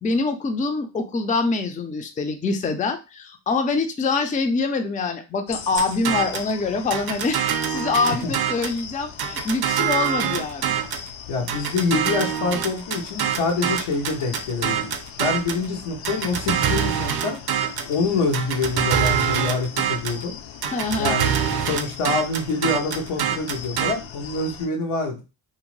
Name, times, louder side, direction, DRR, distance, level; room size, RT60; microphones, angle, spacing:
voice 1, 0.0-10.7 20.7-21.2, left 3 dB, 15° left, 6 dB, 0.4 m, -25 dB
sound 1, 5.5-24.7, left 7 dB, 65° left, 0.6 m, -40 dB
sound 2, 5.8-6.5 6.9-8.8 9.2-11.1 11.5-15.6 16.0-17.9 18.3-20.2 20.6-23.9, right 9 dB, 50° right, 0.5 m, -25 dB
voice 2, 11.3-17.4 17.9-20.3 21.0-25.2, left 3 dB, 90° left, 1 dB, 1.0 m, -26 dB
2.6 x 2.1 x 3.1 m, 0.28 s
cardioid pair, 70°, 49 cm